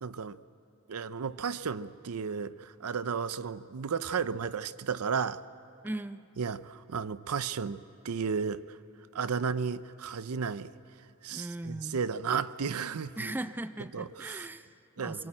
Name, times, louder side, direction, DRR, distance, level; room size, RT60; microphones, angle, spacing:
voice 1, 0.0-0.4 0.9-5.4 6.4-8.6 9.1-10.7 11.2-13.3 13.9-14.5 15.0-15.3, right 6 dB, 85° right, 0.6 m, -33 dB
voice 2, 5.8-6.3 11.3-12.0 13.2-15.3, right 1 dB, 10° right, 0.5 m, -38 dB
23.0 x 21.0 x 8.7 m
head